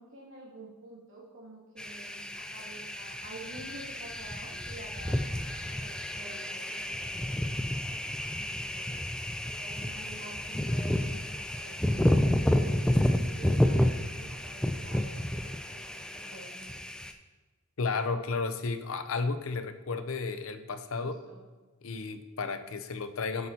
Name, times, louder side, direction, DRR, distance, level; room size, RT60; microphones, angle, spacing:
voice 1, 0.0-9.0 9.4-16.8 21.0-21.4, right 2 dB, 65° right, -5 dB, 2.4 m, -49 dB
sound 1, 1.8-17.1, left 1 dB, 5° left, 0.4 m, -30 dB
voice 2, 17.8-21.1 21.8-23.5, left 4 dB, 70° left, 10 dB, 0.6 m, -33 dB
8.8 x 8.5 x 2.9 m, 1.2 s
head